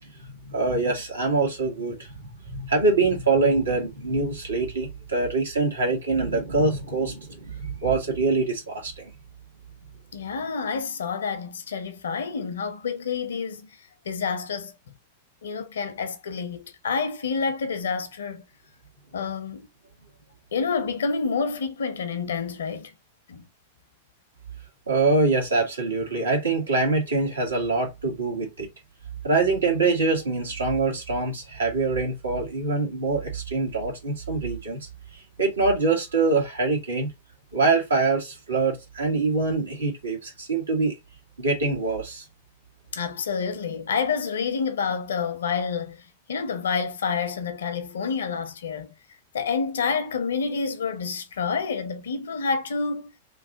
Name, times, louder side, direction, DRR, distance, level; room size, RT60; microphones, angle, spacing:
voice 1, 0.4-9.1 24.9-28.7 29.2-34.9 35.4-37.1 37.5-40.9 41.4-42.2, right 3 dB, 80° right, 1.6 m, -24 dB
voice 2, 10.1-13.6 14.1-14.7 15.4-18.4 19.1-19.7 20.5-22.9 23.3-23.4 42.9-46.0 46.3-48.9 49.3-53.1, left 5 dB, 70° left, 0.7 m, -28 dB
3.2 x 2.5 x 3.6 m
figure-of-eight pair, 100°, 0 cm